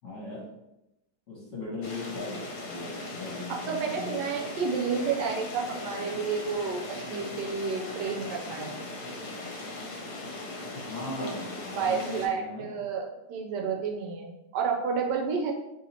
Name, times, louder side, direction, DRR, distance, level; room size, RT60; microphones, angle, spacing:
voice 1, 0.0-0.4 1.3-4.2 10.7-12.8, left 2 dB, 45° left, -6 dB, 1.5 m, -39 dB
sound 1, 1.8-12.3, left 2 dB, 70° left, 1.2 m, -39 dB
voice 2, 3.5-8.7 11.2-15.5, right 5 dB, 80° right, 2 dB, 1.3 m, -31 dB
3.1 x 2.8 x 4.1 m, 0.90 s
omnidirectional pair, 1.9 m